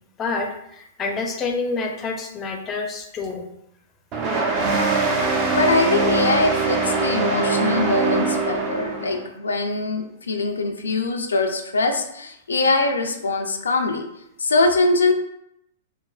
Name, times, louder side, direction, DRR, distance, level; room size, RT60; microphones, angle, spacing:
voice 1, 0.2-3.5, left 4 dB, 25° left, 3 dB, 0.4 m, -28 dB
sound 1, 4.1-9.2, right 3 dB, 35° right, 0.5 m, -22 dB
voice 2, 5.4-14.1 14.4-15.1, left 3 dB, 90° left, 3 dB, 0.3 m, -22 dB
3.2 x 2.0 x 2.3 m, 0.77 s
hypercardioid pair, 115°, 0 cm